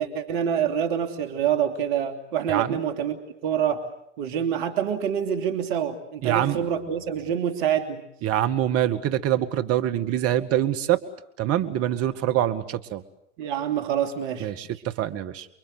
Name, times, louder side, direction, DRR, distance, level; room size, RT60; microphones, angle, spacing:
voice 1, 0.0-3.8 4.2-8.0 13.4-14.5, right 9 dB, 55° right, 6 dB, 2.9 m, -26 dB
voice 2, 6.2-6.6 8.2-11.0 11.4-13.0 14.4-15.5, right 12 dB, 40° right, 10 dB, 2.0 m, -25 dB
29.5 x 23.5 x 8.0 m, 0.76 s
hypercardioid pair, 95°, 35 cm